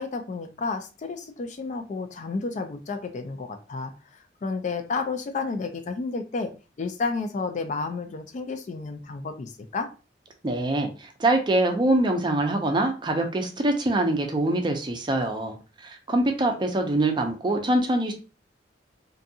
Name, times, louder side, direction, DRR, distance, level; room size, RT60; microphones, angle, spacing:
voice 1, 0.0-3.9 4.4-6.5 6.8-9.9, left 4 dB, 45° left, 7 dB, 0.3 m, -31 dB
voice 2, 10.4-18.1, right 1 dB, 25° right, 4 dB, 0.4 m, -24 dB
2.6 x 2.3 x 2.6 m, 0.33 s
head